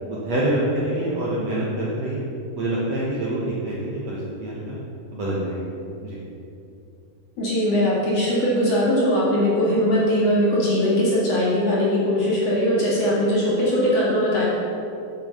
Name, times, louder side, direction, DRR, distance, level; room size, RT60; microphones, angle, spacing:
voice 1, 0.1-2.2 2.6-4.8 5.1-5.7 6.0-6.2, right 1 dB, 80° right, -6 dB, 1.5 m, -26 dB
voice 2, 7.4-14.4, equal, 45° left, -7 dB, 2.5 m, -20 dB
8.7 x 7.0 x 6.6 m, 2.7 s
omnidirectional pair, 4.9 m